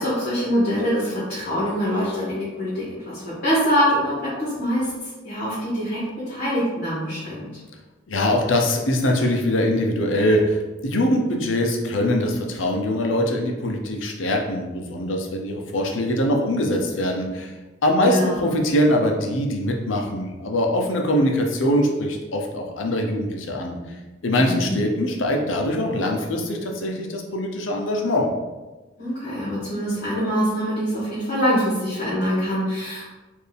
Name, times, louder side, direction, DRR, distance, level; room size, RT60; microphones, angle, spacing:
voice 1, 0.0-7.5 18.0-18.5 24.4-24.8 29.0-33.1, equal, 50° left, -10 dB, 1.5 m, -24 dB
voice 2, 8.1-17.5 17.8-23.8 24.2-28.3, left 1 dB, 80° left, 1 dB, 0.7 m, -22 dB
4.5 x 2.6 x 3.4 m, 1.2 s
head